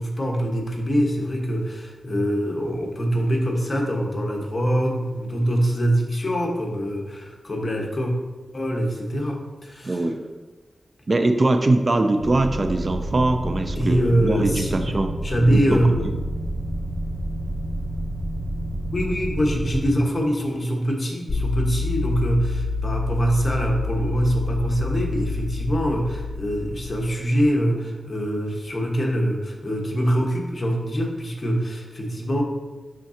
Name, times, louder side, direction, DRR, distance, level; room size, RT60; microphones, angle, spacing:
voice 1, 0.0-8.1 8.5-10.1 13.7-14.8 15.2-16.1 18.8-32.4, equal, 40° left, -1 dB, 1.4 m, -24 dB
voice 2, 9.8-10.2 11.1-15.1 15.5-15.8, right 2 dB, 45° right, 6 dB, 0.5 m, -22 dB
sound 1, 12.2-19.9, right 1 dB, 15° right, 0.9 m, -29 dB
sound 2, 21.3-27.4, left 3 dB, 70° left, 0.9 m, -28 dB
11.0 x 3.7 x 2.9 m, 1.2 s
cardioid pair, 65°, 0 cm